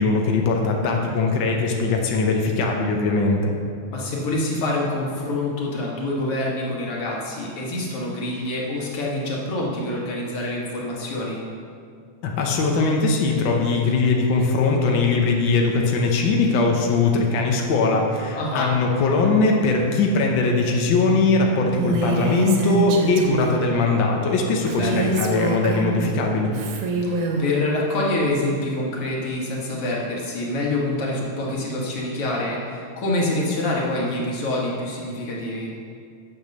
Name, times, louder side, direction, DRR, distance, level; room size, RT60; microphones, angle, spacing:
voice 1, 0.0-3.5 12.2-26.5, left 3 dB, 80° left, 0 dB, 1.0 m, -20 dB
voice 2, 3.9-11.4 18.3-18.7 24.8-25.1 27.0-35.7, left 1 dB, 50° left, -3 dB, 2.3 m, -26 dB
Female speech woman speaking, 21.7-23.7 24.7-26.1 26.5-27.5, right 3 dB, 85° right, 2.5 m, -25 dB
8.4 x 6.9 x 6.7 m, 2.3 s
omnidirectional pair, 3.5 m